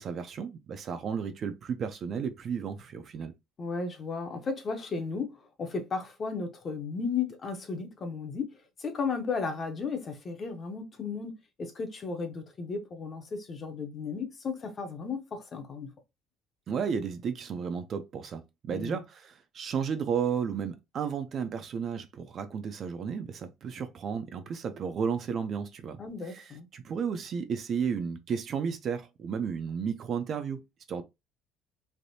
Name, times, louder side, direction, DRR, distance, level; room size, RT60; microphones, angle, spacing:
voice 1, 0.0-3.3 16.7-26.0 26.3-26.5 26.7-31.0, right 6 dB, 35° right, 0.4 m, -33 dB
voice 2, 3.6-15.9 18.7-19.0 26.0-26.7, left 4 dB, 25° left, 0.6 m, -35 dB
3.3 x 2.6 x 2.6 m
cardioid pair, 170°, 0 cm